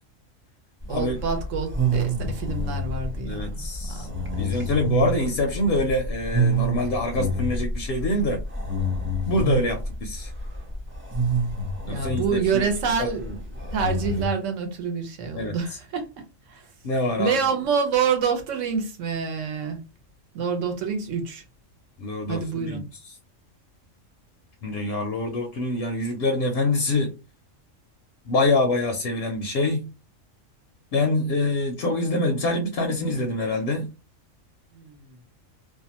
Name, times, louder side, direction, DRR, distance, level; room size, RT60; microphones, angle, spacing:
sound 1, 0.8-14.3, right 2 dB, 15° right, 0.5 m, -28 dB
voice 1, 0.9-3.5 3.9-4.2 4.5-4.7 11.9-13.3 13.5-16.7 17.2-19.8 20.3-21.4 22.3-22.8 34.7-35.2, right 6 dB, 70° right, 1.1 m, -27 dB
voice 2, 3.2-4.1 4.4-8.4 9.3-10.3 11.9-12.7 13.0-13.1 15.4-15.8 16.8-17.4 22.0-22.8 24.6-27.1 28.3-29.8 30.9-33.9, left 2 dB, 65° left, 0.7 m, -25 dB
2.6 x 2.2 x 2.8 m
omnidirectional pair, 1.4 m